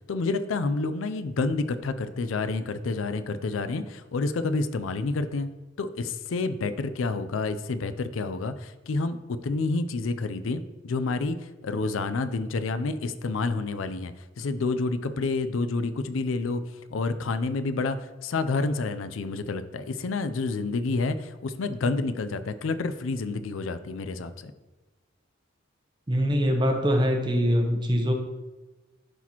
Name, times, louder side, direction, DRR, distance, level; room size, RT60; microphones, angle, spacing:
voice 1, 0.1-5.5 5.8-16.6 16.9-24.5, left 3 dB, 80° left, 11 dB, 0.5 m, -29 dB
voice 2, 26.1-28.1, equal, 25° right, 3 dB, 0.8 m, -23 dB
11.5 x 4.1 x 3.0 m, 1.1 s
head